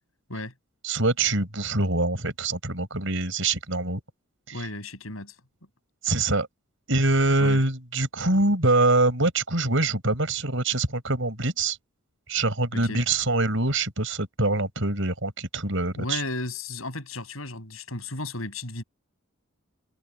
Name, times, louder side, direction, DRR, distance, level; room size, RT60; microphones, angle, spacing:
voice 1, 0.8-4.0 4.5-4.6 6.0-6.5 6.9-11.8 12.3-16.2, right 2 dB, 60° right, 6.6 m, -24 dB
voice 2, 4.5-5.3 7.4-7.6 12.7-13.0 16.0-18.8, left 2 dB, 75° left, 7.8 m, -34 dB
head